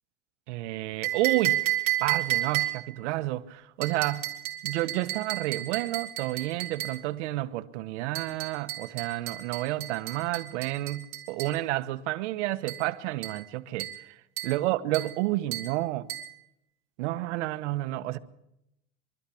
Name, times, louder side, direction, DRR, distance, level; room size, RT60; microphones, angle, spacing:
voice 1, 0.5-1.7 2.0-4.3 4.6-13.9 14.4-16.1 17.0-18.2, right 16 dB, 85° right, 1.2 m, -30 dB
sound 1, 1.0-3.0 3.8-7.1 8.2-11.6 12.7-12.9 13.2-13.5 13.8-14.1 14.4-14.6 14.9-15.2 15.5-15.8 16.1-16.4, right 16 dB, 40° right, 3.7 m, -32 dB
24.0 x 13.0 x 8.5 m
cardioid pair, 170°, 34 cm